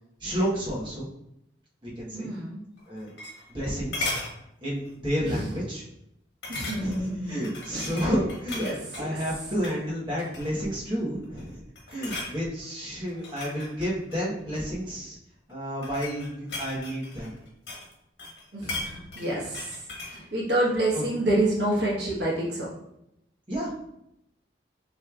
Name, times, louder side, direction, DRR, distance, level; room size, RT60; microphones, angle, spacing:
voice 1, 0.2-1.1 1.8-2.3 2.9-3.1 3.5-4.1 4.6-5.8 6.7-11.6 11.9-15.2 15.5-17.3 20.9-21.0 23.5-23.7, equal, 25° right, -7 dB, 1.1 m, -31 dB
voice 2, 2.1-2.6 5.2-5.5 6.5-7.4 7.7-8.1 8.5-9.2 18.5-19.8 20.1-22.7, right 1 dB, 65° right, -5 dB, 1.3 m, -28 dB
sound 1, 2.8-3.6 3.9-4.3 4.8-5.1 5.4-5.5 6.4-7.1 7.4-9.1 9.5-9.8 10.2-10.7 11.2-11.5 11.7-12.3 13.1-14.7 15.5-17.9 18.2-20.2 20.5-20.6, left 2 dB, 65° left, 1.3 m, -36 dB
6.2 x 3.2 x 2.4 m, 0.80 s
head